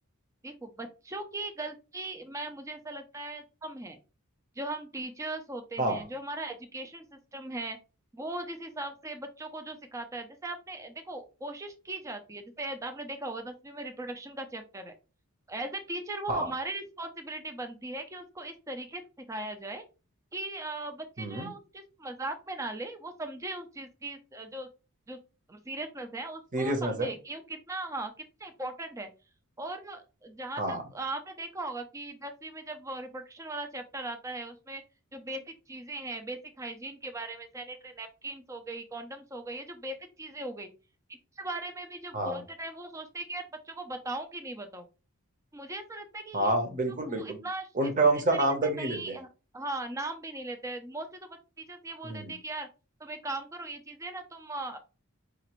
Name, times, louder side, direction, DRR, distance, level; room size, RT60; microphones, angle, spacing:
voice 1, 0.4-4.0 4.6-7.8 8.1-14.9 15.5-19.0 19.3-19.8 20.3-24.7 25.1-25.2 25.5-28.1 28.4-29.1 29.6-34.8 35.1-40.7 41.4-44.9 45.5-46.6 47.2-47.9 48.5-49.3 49.5-52.7 53.0-54.8, right 2 dB, 15° right, 7 dB, 0.4 m, -39 dB
voice 2, 21.2-21.5 26.5-27.1 30.6-30.8 42.1-42.4 46.3-47.4 47.7-49.2 52.0-52.3, right 2 dB, 35° right, 5 dB, 0.8 m, -28 dB
4.9 x 2.5 x 3.0 m, 0.32 s
head